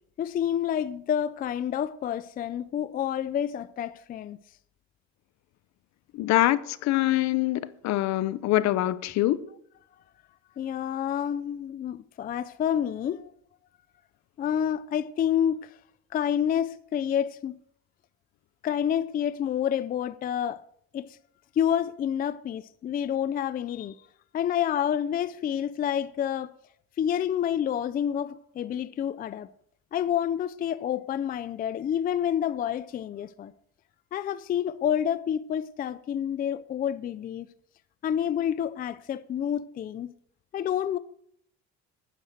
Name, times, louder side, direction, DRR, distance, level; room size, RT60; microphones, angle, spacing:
voice 1, 0.2-4.4 10.6-13.3 14.4-15.7 16.1-17.6 18.6-20.6 20.9-21.1 21.6-24.0 24.3-26.5 27.0-29.5 29.9-33.5 34.1-37.5 38.0-40.1 40.5-41.0, left 9 dB, 30° left, 0.4 m, -28 dB
voice 2, 6.1-9.4, left 15 dB, 65° left, 0.8 m, -24 dB
11.0 x 10.0 x 6.5 m
cardioid pair, 150°, 30 cm